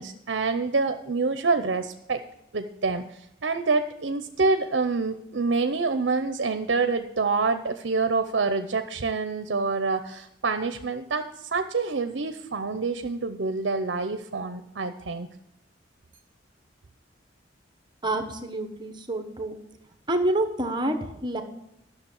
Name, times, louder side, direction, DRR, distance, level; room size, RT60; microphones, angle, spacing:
voice 1, 0.0-2.2 2.5-3.0 3.4-15.3, right 4 dB, 65° right, 9 dB, 0.7 m, -26 dB
voice 2, 18.0-19.6 20.1-21.4, right 1 dB, 25° right, 6 dB, 1.0 m, -27 dB
11.5 x 6.7 x 7.2 m, 0.80 s
head